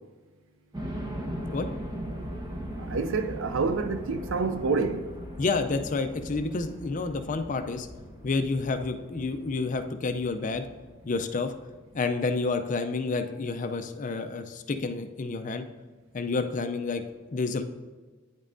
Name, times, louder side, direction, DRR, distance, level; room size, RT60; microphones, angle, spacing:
sound 1, 0.7-12.4, equal, 20° right, 0.8 m, -39 dB
voice 1, 2.8-5.1, right 4 dB, 60° right, 0.4 m, -28 dB
voice 2, 5.4-7.9 8.2-10.7 11.0-11.5 11.9-15.6 16.1-17.0 17.3-17.6, left 3 dB, 35° left, 0.4 m, -29 dB
9.5 x 5.4 x 2.6 m
head